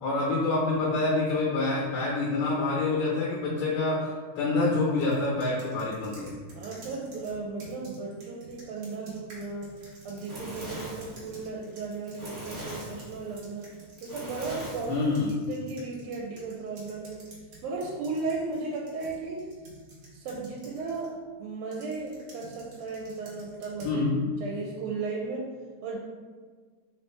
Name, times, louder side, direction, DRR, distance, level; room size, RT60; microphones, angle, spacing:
voice 1, 0.0-6.3 14.9-15.3 23.8-24.3, left 3 dB, 75° left, -5 dB, 1.8 m, -27 dB
sound 1, 5.0-14.2 14.4-21.1 21.7-24.0, right 2 dB, 60° right, 1.5 m, -50 dB
voice 2, 6.5-9.7 10.0-13.6 14.0-15.1 15.5-17.2 17.6-19.5 20.1-21.1 21.4-24.0 24.4-25.5 25.8-26.0, right 4 dB, 85° right, -2 dB, 2.0 m, -35 dB
Fire, 9.8-15.3, right 1 dB, 35° right, 0.9 m, -41 dB
4.6 x 2.9 x 3.3 m, 1.5 s
omnidirectional pair, 3.4 m